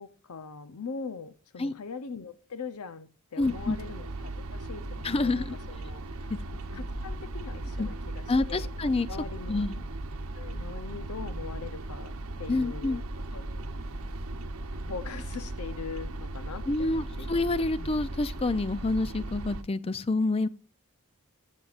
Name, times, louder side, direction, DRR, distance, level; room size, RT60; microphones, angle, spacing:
voice 1, 0.0-6.3 6.7-8.7 9.1-9.6 10.3-12.1 12.4-13.0 13.3-13.6 14.7-17.3, left 5 dB, 80° left, 0.7 m, -41 dB
voice 2, 3.4-3.8 5.0-5.6 6.7-6.8 7.8-7.9 8.3-9.1 9.5-9.8 12.5-13.0 16.7-20.5, left 2 dB, 25° left, 0.4 m, -28 dB
sound 1, 3.4-19.6, right 2 dB, 70° right, 0.9 m, -37 dB
15.0 x 7.4 x 2.5 m
head